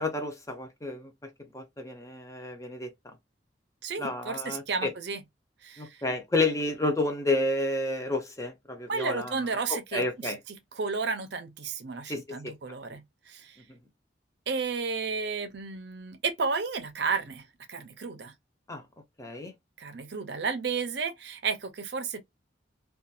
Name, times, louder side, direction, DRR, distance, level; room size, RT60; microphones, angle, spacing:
voice 1, 0.0-3.2 4.0-4.9 5.8-10.4 12.1-12.5 13.7-13.8 18.7-18.8 19.2-19.6, left 2 dB, 15° left, 0.5 m, -31 dB
voice 2, 3.8-5.2 5.6-6.0 8.9-13.6 14.5-18.3 19.8-22.2, right 4 dB, 60° right, 0.5 m, -33 dB
2.4 x 2.3 x 2.6 m
head